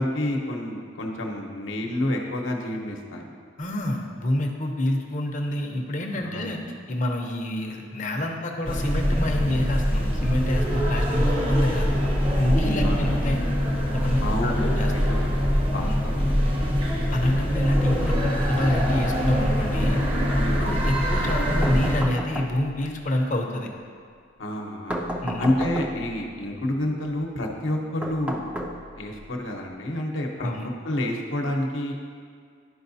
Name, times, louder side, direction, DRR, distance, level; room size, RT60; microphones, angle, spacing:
voice 1, 0.0-3.3 6.2-6.5 12.8-13.2 14.2-15.3 15.7-16.4 20.3-20.6 24.4-25.0 25.4-28.4 29.0-30.5 30.8-31.9, left 1 dB, 80° left, 1 dB, 0.9 m, -29 dB
voice 2, 3.6-6.6 6.9-11.9 12.4-13.4 13.9-14.9 15.7-16.0 17.1-20.0 20.5-23.7 25.2-25.5 30.4-30.7, left 1 dB, 40° left, 2 dB, 0.7 m, -27 dB
sound 1, 8.6-22.0, equal, 30° right, 0.8 m, -23 dB
sound 2, 21.6-22.9 24.9-26.2 28.0-29.2, equal, 5° right, 0.4 m, -32 dB
11.0 x 4.8 x 2.7 m, 2.1 s
head